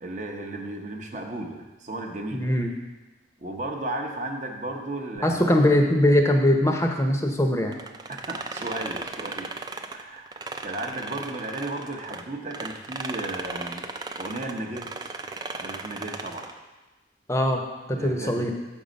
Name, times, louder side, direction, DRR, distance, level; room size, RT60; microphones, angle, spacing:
voice 1, 0.0-2.6 3.4-5.7 8.1-9.5 9.9-10.3 10.6-13.9 14.2-15.1 15.6-16.5 17.9-18.4, right 2 dB, 35° right, 3 dB, 0.8 m, -34 dB
voice 2, 2.3-2.7 5.2-7.7 17.3-17.6 17.9-18.5, left 1 dB, 15° left, 3 dB, 0.6 m, -21 dB
sound 1, 7.7-12.2 12.5-16.6, right 3 dB, 20° right, 0.3 m, -36 dB
7.3 x 5.5 x 5.1 m, 1.2 s
head